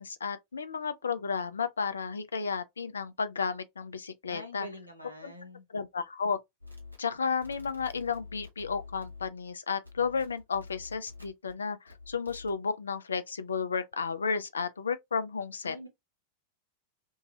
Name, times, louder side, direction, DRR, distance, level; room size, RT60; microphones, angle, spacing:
voice 1, 0.0-4.7 5.2-5.3 5.7-6.4 7.0-15.9, left 5 dB, 70° left, 0.4 m, -33 dB
voice 2, 4.3-5.6 15.6-15.9, equal, 90° left, 0.9 m, -44 dB
sound 1, 6.6-9.5 9.8-11.5 11.9-12.6, left 4 dB, 90° right, 1.0 m, -48 dB
2.7 x 2.7 x 2.8 m
figure-of-eight pair, 90°, 0 cm